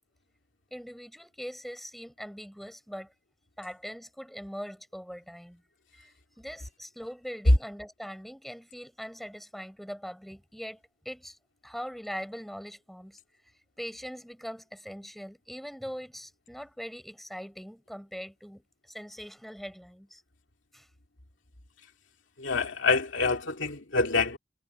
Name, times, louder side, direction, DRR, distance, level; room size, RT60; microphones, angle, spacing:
voice 1, 0.7-3.1 3.6-5.6 5.9-10.8 11.0-13.2 13.8-20.2 20.7-20.9, equal, ahead, 6.7 m, -42 dB
voice 2, 22.4-24.4, left 4 dB, 75° left, 2.5 m, -26 dB
head